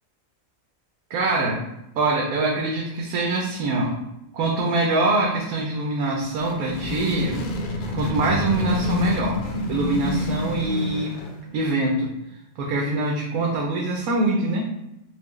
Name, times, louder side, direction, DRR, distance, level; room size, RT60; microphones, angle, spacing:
voice 1, 1.1-1.6 2.0-4.0 4.3-7.5 7.9-9.4 9.7-11.2 11.5-12.1 12.6-14.7, right 2 dB, 90° right, -1 dB, 1.0 m, -24 dB
sound 1, 6.2-11.5, left 2 dB, 65° left, 0.5 m, -28 dB
4.3 x 2.1 x 3.0 m, 0.90 s
omnidirectional pair, 1.5 m